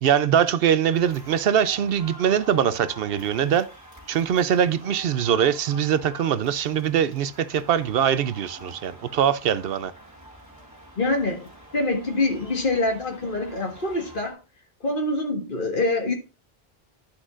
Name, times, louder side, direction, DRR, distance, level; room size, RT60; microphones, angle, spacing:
voice 1, 0.0-3.7 4.1-9.9, right 9 dB, 70° right, 0.7 m, -22 dB
sound 1, 0.9-14.3, right 1 dB, 15° right, 3.5 m, -46 dB
voice 2, 11.0-14.4 14.8-16.1, left 2 dB, 55° left, 1.8 m, -25 dB
11.5 x 6.2 x 2.5 m
omnidirectional pair, 1.0 m